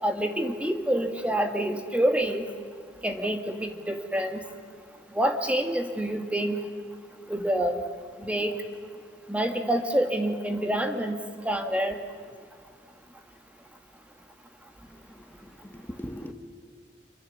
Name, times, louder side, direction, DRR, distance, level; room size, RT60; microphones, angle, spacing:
voice 1, 0.0-2.5 3.0-4.4 5.1-6.6 7.3-7.8 8.2-8.5 9.3-11.2 11.4-12.0, right 1 dB, 10° right, 5 dB, 1.5 m, -27 dB
voice 2, 14.9-15.3 15.6-16.3, equal, 10° left, 5 dB, 1.5 m, -40 dB
27.0 x 23.0 x 7.1 m, 2.1 s
head